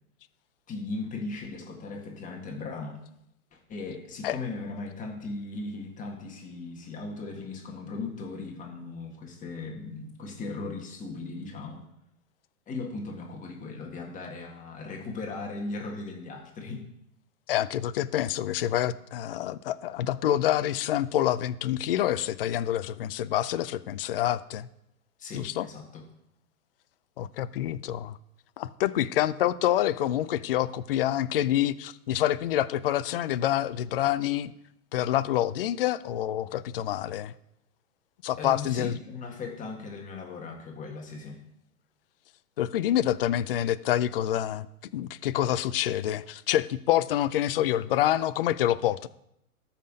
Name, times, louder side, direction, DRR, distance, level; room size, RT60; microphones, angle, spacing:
voice 1, 0.7-3.0 3.5-11.8 12.7-16.9 25.2-26.0 38.4-41.4, left 3 dB, 15° left, 0 dB, 1.8 m, -38 dB
voice 2, 17.5-24.7 25.3-25.7 27.2-28.2 28.6-34.5 34.9-37.3 38.2-39.0 42.6-44.7 44.9-49.1, left 12 dB, 40° left, 13 dB, 0.4 m, -27 dB
13.0 x 5.8 x 5.2 m, 0.79 s
hypercardioid pair, 135°, 46 cm